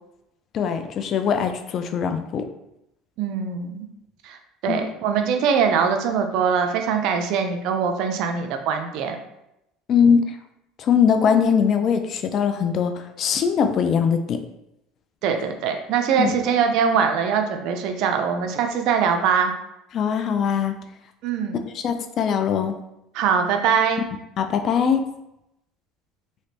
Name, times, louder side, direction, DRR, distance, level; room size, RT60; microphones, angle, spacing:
voice 1, 0.5-2.5 4.7-4.8 9.9-10.2 10.8-14.4 16.2-16.4 19.9-20.8 21.7-22.8 24.4-25.0, left 7 dB, 50° left, 7 dB, 0.4 m, -21 dB
voice 2, 3.2-3.9 4.2-4.4 4.6-9.2 15.2-19.5 21.2-21.6 23.1-24.0, right 6 dB, 65° right, 5 dB, 0.5 m, -22 dB
3.2 x 2.9 x 2.9 m, 0.85 s
supercardioid pair, 95°, 0 cm